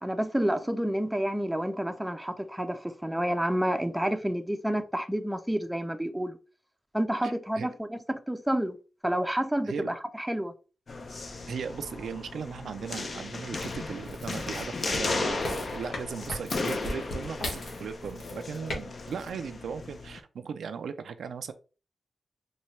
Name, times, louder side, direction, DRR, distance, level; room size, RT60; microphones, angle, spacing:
voice 1, 0.0-6.4 6.9-8.8 9.0-10.5, right 1 dB, 5° right, 0.5 m, -29 dB
voice 2, 7.2-7.7 9.7-9.9 11.5-21.5, right 6 dB, 80° right, 0.3 m, -37 dB
sound 1, 10.9-20.2, left 3 dB, 50° left, 0.6 m, -35 dB
sound 2, 13.6-18.8 19.1-19.3, left 1 dB, 80° left, 1.4 m, -38 dB
4.2 x 2.3 x 3.1 m
cardioid pair, 75°, 0 cm